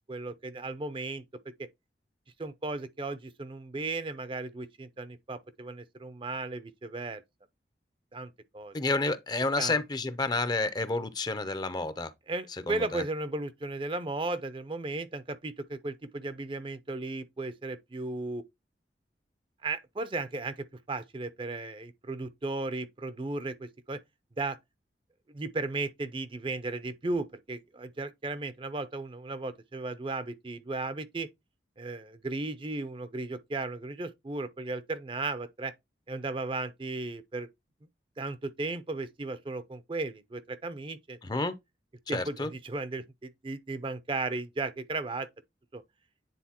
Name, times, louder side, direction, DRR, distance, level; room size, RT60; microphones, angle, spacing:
voice 1, 0.1-1.2 1.6-1.7 2.4-7.2 8.1-8.7 9.6-9.8 12.3-18.4 19.6-24.0 24.4-24.6 25.3-31.3 31.8-35.7 36.1-37.5 38.2-41.2 42.1-45.3 45.7-45.8, right 3 dB, 30° right, 0.5 m, -35 dB
voice 2, 8.7-12.1 12.7-13.0 41.2-41.5 42.1-42.5, left 3 dB, 25° left, 0.5 m, -30 dB
9.4 x 3.8 x 2.8 m
head